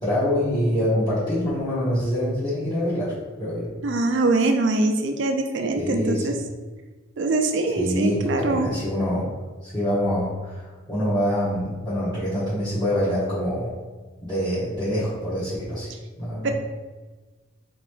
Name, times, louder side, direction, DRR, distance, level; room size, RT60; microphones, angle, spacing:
voice 1, 0.0-3.7 5.8-6.4 7.8-9.3 9.6-13.7 14.2-15.9 16.2-16.5, equal, 20° left, -12 dB, 1.1 m, -25 dB
voice 2, 3.8-6.3 7.2-8.7 16.4-16.5, right 2 dB, 65° right, 4 dB, 0.4 m, -23 dB
3.2 x 3.0 x 3.1 m, 1.3 s
head